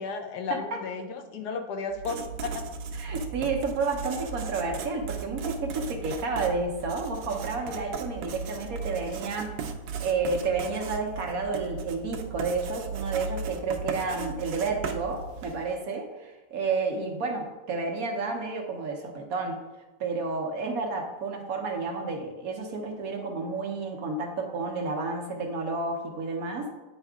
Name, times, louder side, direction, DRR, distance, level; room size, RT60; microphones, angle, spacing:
voice 1, 0.0-2.7, left 5 dB, 70° left, 6 dB, 1.1 m, -34 dB
Writing, 1.9-15.7, right 5 dB, 85° right, 1.3 m, -36 dB
voice 2, 2.9-9.6 10.0-19.6 20.0-26.7, right 4 dB, 60° right, 2 dB, 1.2 m, -31 dB
9.0 x 4.7 x 3.5 m, 1.1 s
omnidirectional pair, 1.9 m